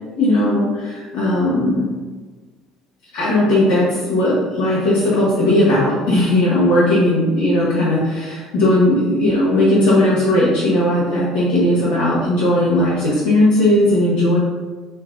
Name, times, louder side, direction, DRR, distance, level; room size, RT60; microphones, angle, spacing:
voice 1, 0.2-1.9 3.1-14.4, left 1 dB, 90° left, -10 dB, 1.1 m, -17 dB
2.7 x 2.7 x 3.6 m, 1.3 s
supercardioid pair, 95°, 0 cm